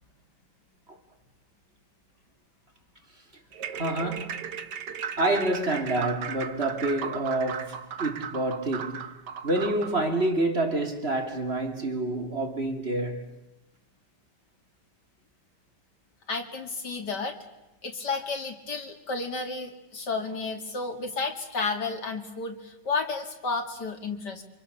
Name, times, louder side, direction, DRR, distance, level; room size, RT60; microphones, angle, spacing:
sound 1, 3.5-10.0, right 7 dB, 75° right, 1.8 m, -37 dB
voice 1, 3.7-4.4 5.2-9.2 9.4-13.3, right 2 dB, 35° right, 3.1 m, -28 dB
voice 2, 16.3-17.4 17.8-24.4, left 4 dB, 75° left, 3.0 m, -32 dB
30.0 x 26.0 x 7.0 m
omnidirectional pair, 1.9 m